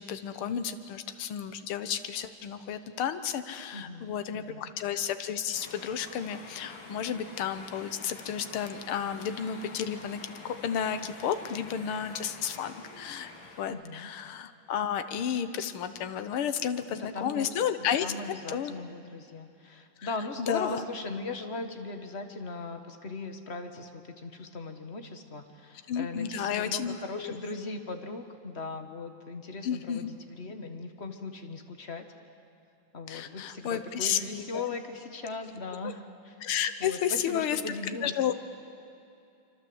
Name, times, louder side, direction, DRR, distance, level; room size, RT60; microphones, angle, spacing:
voice 1, 0.0-13.3 13.6-18.1 18.5-18.7 20.0-20.1 20.5-20.8 25.9-27.4 29.6-30.1 33.1-34.6 35.8-35.9 36.4-37.6 38.0-38.3, left 8 dB, 90° left, 10 dB, 1.9 m, -32 dB
voice 2, 3.7-4.7 13.7-14.1 16.9-17.5 17.8-32.1 32.9-36.3 36.8-38.2, left 3 dB, 35° left, 6 dB, 1.7 m, -39 dB
sound 1, 5.5-13.7, left 3 dB, 65° left, 3.0 m, -47 dB
26.0 x 25.0 x 8.0 m, 2.7 s
omnidirectional pair, 2.3 m